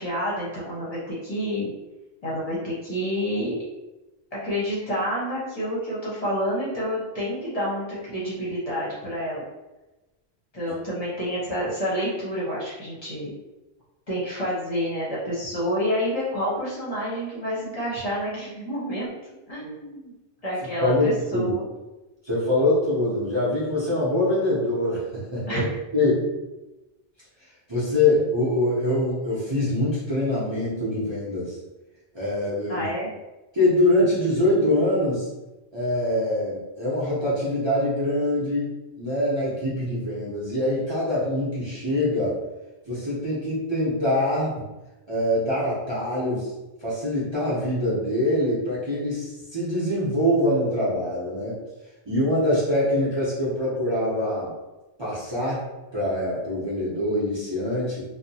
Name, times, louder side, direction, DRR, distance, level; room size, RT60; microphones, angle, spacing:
voice 1, 0.0-1.7 2.2-3.6 4.3-9.4 10.5-13.3 14.1-19.1 19.5-20.1 20.4-21.6 25.5-25.6 32.7-33.1, equal, 40° left, -8 dB, 0.8 m, -28 dB
voice 2, 20.8-21.5 22.2-25.0 25.3-25.7 25.9-26.3 27.7-31.5 32.1-32.8 33.5-35.3 35.7-38.7 39.0-42.3 42.9-44.5 45.1-46.5 46.8-51.6 52.1-54.5 55.0-55.6 55.9-58.0, left 1 dB, 30° right, -9 dB, 0.7 m, -24 dB
2.7 x 2.1 x 2.7 m, 1.0 s
omnidirectional pair, 1.1 m